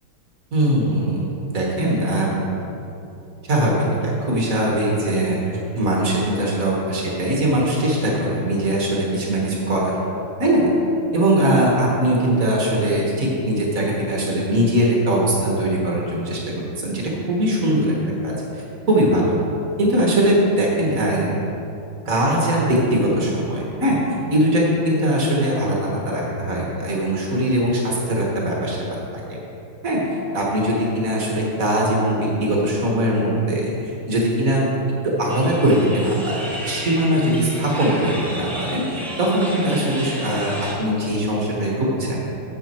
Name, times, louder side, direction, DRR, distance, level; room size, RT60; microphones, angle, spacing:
voice 1, 0.5-2.4 3.5-5.4 5.7-9.9 10.4-10.7 11.1-17.9 18.2-19.3 19.8-21.3 22.0-24.0 24.3-28.8 29.8-34.7 35.0-42.3, right 1 dB, 45° right, -3 dB, 1.7 m, -21 dB
sound 1, 35.3-40.7, equal, ahead, 0.6 m, -33 dB
9.1 x 7.3 x 4.4 m, 2.9 s
omnidirectional pair, 2.3 m